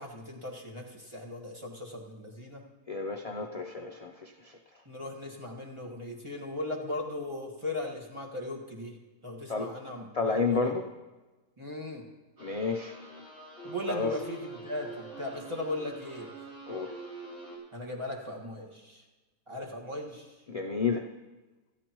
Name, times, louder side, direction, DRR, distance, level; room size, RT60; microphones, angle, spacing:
voice 1, 0.0-2.6 4.9-9.0 9.2-10.7 11.6-12.0 13.6-16.5 17.7-19.0 19.5-20.4, left 1 dB, 20° right, -1 dB, 1.8 m, -38 dB
voice 2, 2.9-4.6 9.5-9.7 10.1-10.9 12.4-13.0 13.9-14.2 16.7-17.0 20.5-21.1, left 4 dB, 50° left, 3 dB, 0.4 m, -31 dB
sound 1, 12.4-17.6, right 2 dB, 75° right, 5.1 m, -45 dB
17.5 x 13.5 x 3.0 m, 1.2 s
omnidirectional pair, 1.5 m